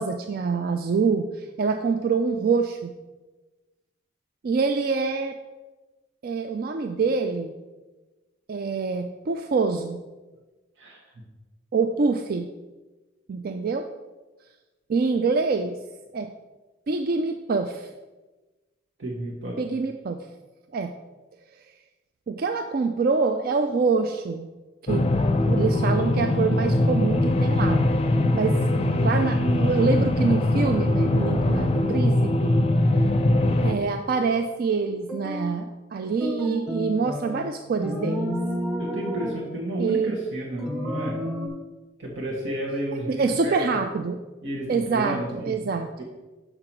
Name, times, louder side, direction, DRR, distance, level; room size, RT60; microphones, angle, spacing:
voice 1, 0.0-2.9 4.4-5.4 6.2-7.5 8.5-10.0 11.7-12.5 13.3-13.9 14.9-15.8 16.1-16.3 16.9-17.9 19.6-20.2 20.7-20.9 22.3-24.5 24.8-25.1 25.4-27.8 28.3-32.6 33.6-38.4 39.8-40.1 43.1-44.2 44.7-45.9, right 4 dB, 50° right, 6 dB, 0.4 m, -25 dB
voice 2, 19.0-19.6 38.8-41.2 42.0-43.8 44.4-45.6 46.0-46.1, right 1 dB, 80° right, -4 dB, 1.4 m, -31 dB
sound 1, 24.9-33.7, left 1 dB, 30° left, 0.5 m, -22 dB
sound 2, 35.1-35.6 36.2-37.5 37.8-39.4 40.6-41.5, left 1 dB, 5° right, 1.0 m, -30 dB
6.7 x 5.8 x 4.5 m, 1.2 s
head